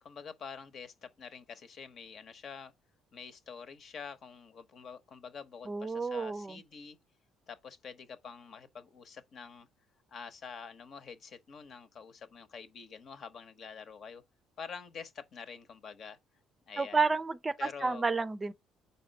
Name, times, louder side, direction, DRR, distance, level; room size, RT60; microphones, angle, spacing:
voice 1, 0.0-2.7 3.1-7.0 7.5-9.7 10.1-14.2 14.6-16.2 16.7-17.1 17.6-18.1, left 6 dB, 55° left, 1.0 m, -47 dB
voice 2, 5.7-6.6 16.8-18.5, right 4 dB, 20° right, 0.5 m, -31 dB
5.5 x 4.2 x 4.0 m
cardioid pair, 90°, 0 cm